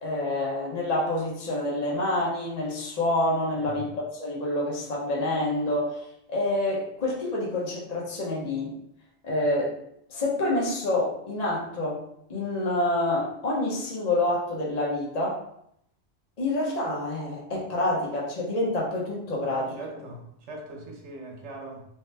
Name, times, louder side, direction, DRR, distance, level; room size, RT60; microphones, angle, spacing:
voice 1, 0.0-8.7 9.2-9.7 10.1-12.0 12.3-15.4 16.4-19.8, left 1 dB, 40° left, -4 dB, 1.0 m, -27 dB
voice 2, 3.5-4.0 19.6-21.8, right 2 dB, 90° right, 1 dB, 1.1 m, -41 dB
3.4 x 3.0 x 3.3 m, 0.74 s
omnidirectional pair, 1.2 m